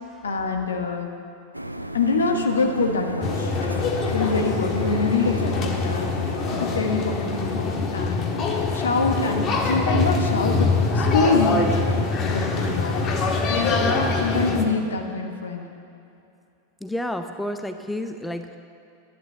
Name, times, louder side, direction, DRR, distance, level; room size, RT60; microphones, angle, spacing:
voice 1, 0.2-1.1 1.9-3.5 4.1-6.1 6.6-8.4 8.7-13.1 13.5-13.8 14.2-15.7, left 3 dB, 70° left, 3 dB, 1.5 m, -25 dB
sound 1, 1.5-6.8, right 1 dB, 90° right, 0.5 m, -34 dB
sound 2, 3.2-14.6, left 3 dB, 30° left, 1.5 m, -24 dB
voice 2, 16.8-18.6, left 1 dB, 5° left, 7 dB, 0.6 m, -31 dB
11.5 x 11.0 x 6.9 m, 2.6 s
figure-of-eight pair, 90°, 0 cm